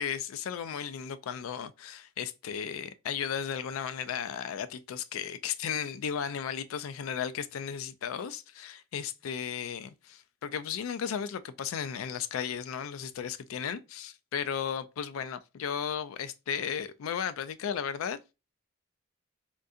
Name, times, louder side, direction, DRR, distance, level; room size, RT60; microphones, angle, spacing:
voice 1, 0.0-18.3, left 8 dB, 85° left, 0.3 m, -35 dB
3.7 x 2.6 x 2.4 m
head